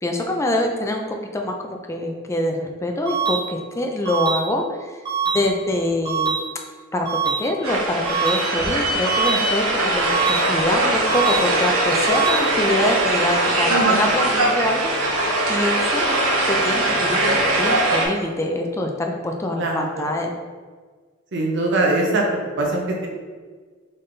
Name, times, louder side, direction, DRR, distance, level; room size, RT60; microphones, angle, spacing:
voice 1, 0.0-5.0 5.3-6.3 6.9-15.2 15.5-16.1 16.5-20.3, left 1 dB, 15° left, 2 dB, 0.4 m, -25 dB
sound 1, 3.1-3.4 4.1-4.4 5.1-5.4 6.1-6.4 7.1-7.4 8.1-8.4 9.1-9.4 10.1-10.4 11.1-11.4 12.1-12.4, right 6 dB, 20° right, 1.1 m, -23 dB
sound 2, 7.6-18.1, right 1 dB, 85° right, 0.9 m, -21 dB
voice 2, 13.7-14.1 19.6-20.1 21.3-22.2 22.6-23.1, right 2 dB, 55° right, 0 dB, 0.6 m, -22 dB
3.9 x 3.7 x 3.3 m, 1.5 s
head